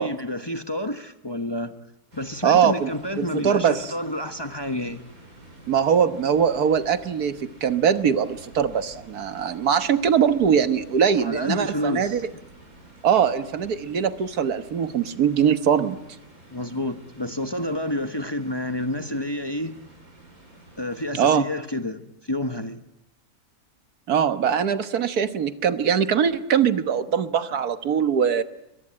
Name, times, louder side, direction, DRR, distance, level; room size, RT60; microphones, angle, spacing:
voice 1, 0.0-1.7 2.1-5.0 11.2-12.2 16.5-19.8 20.8-22.8, left 1 dB, 20° left, 7 dB, 1.0 m, -29 dB
sound 1, 2.1-21.1, right 2 dB, 70° right, 5.9 m, -49 dB
voice 2, 2.4-2.9 3.2-3.8 5.7-12.2 13.0-16.0 21.2-21.5 24.1-28.4, right 7 dB, 85° right, 10 dB, 1.8 m, -22 dB
23.0 x 22.0 x 8.9 m, 0.88 s
omnidirectional pair, 1.6 m